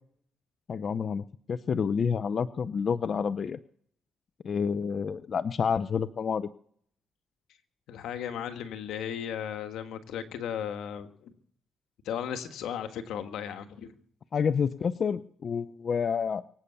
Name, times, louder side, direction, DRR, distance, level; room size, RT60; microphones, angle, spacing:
voice 1, 0.7-3.6 4.4-6.5 14.3-16.4, left 6 dB, 50° left, 13 dB, 0.6 m, -29 dB
voice 2, 7.9-11.3 12.0-13.9, left 9 dB, 85° left, 8 dB, 1.6 m, -36 dB
24.0 x 8.5 x 6.9 m, 0.62 s
cardioid pair, 90°, 0 cm